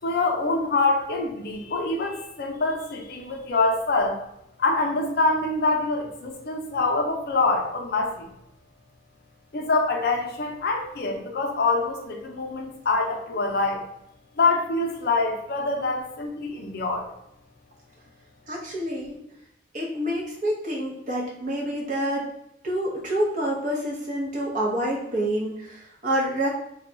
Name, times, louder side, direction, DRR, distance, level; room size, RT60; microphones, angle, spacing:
voice 1, 0.0-4.2 4.6-8.3 9.5-13.8 14.4-17.1, left 3 dB, 55° left, 2 dB, 0.5 m, -25 dB
voice 2, 18.5-19.2 19.7-22.2 22.6-26.5, right 1 dB, 40° right, -4 dB, 0.8 m, -27 dB
2.2 x 2.2 x 3.8 m, 0.81 s
head